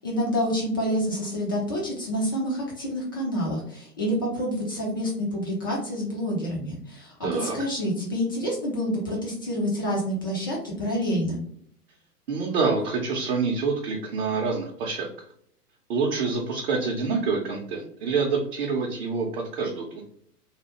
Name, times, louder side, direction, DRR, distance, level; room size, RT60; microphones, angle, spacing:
voice 1, 0.0-7.1 7.4-11.4, equal, 15° left, -4 dB, 0.3 m, -28 dB
voice 2, 7.2-7.6 12.3-15.1 15.9-19.9, right 4 dB, 40° right, -2 dB, 0.6 m, -26 dB
3.3 x 2.2 x 2.9 m, 0.65 s
figure-of-eight pair, 110°, 48 cm